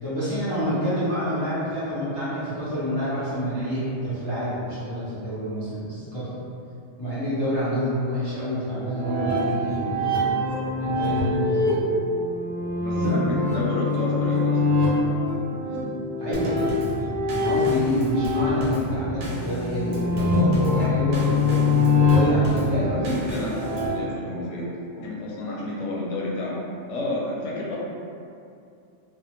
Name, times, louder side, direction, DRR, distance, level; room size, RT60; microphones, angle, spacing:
voice 1, 0.0-6.3 7.0-10.3 10.8-11.7 16.2-16.6 17.3-22.9, equal, 40° left, -13 dB, 0.3 m, -27 dB
sound 1, 8.8-23.9, left 2 dB, 45° right, 0.5 m, -24 dB
voice 2, 12.8-14.6 22.2-22.4 22.7-24.7 25.0-26.6 26.9-27.8, left 1 dB, 70° left, -4 dB, 0.9 m, -30 dB
Drum kit / Snare drum / Bass drum, 16.3-24.0, right 1 dB, 80° right, 0.9 m, -35 dB
2.4 x 2.0 x 2.8 m, 2.4 s
omnidirectional pair, 1.3 m